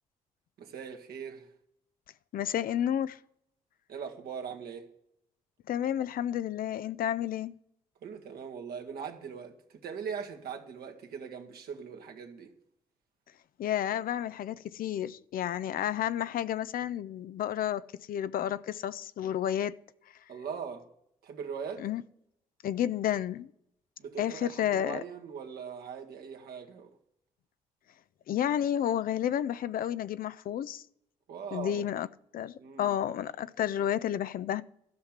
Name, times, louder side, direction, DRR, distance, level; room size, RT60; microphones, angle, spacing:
voice 1, 0.6-1.5 3.9-4.9 8.0-12.5 20.3-20.9 21.2-21.8 24.0-26.9 31.3-32.0 32.6-32.9, right 6 dB, 70° right, 1.8 m, -40 dB
voice 2, 2.3-3.2 5.7-7.6 13.6-19.8 21.8-22.0 22.6-23.5 24.2-25.0 28.3-30.8 31.5-32.1 32.3-34.6, left 10 dB, 60° left, 0.6 m, -31 dB
13.0 x 5.8 x 8.1 m
hypercardioid pair, 50°, 17 cm